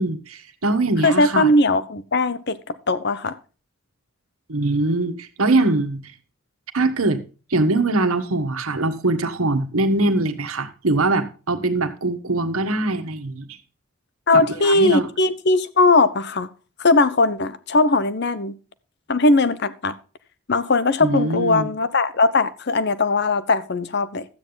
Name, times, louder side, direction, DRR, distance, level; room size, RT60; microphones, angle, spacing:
voice 1, 0.0-1.5 4.5-6.1 6.7-7.2 7.5-13.5 14.3-15.1 21.0-21.7, right 2 dB, 90° right, 1.5 m, -22 dB
voice 2, 1.0-3.4 14.3-16.5 16.8-18.5 19.1-20.0 20.5-24.3, left 2 dB, 50° left, 0.9 m, -19 dB
13.0 x 8.9 x 3.9 m
head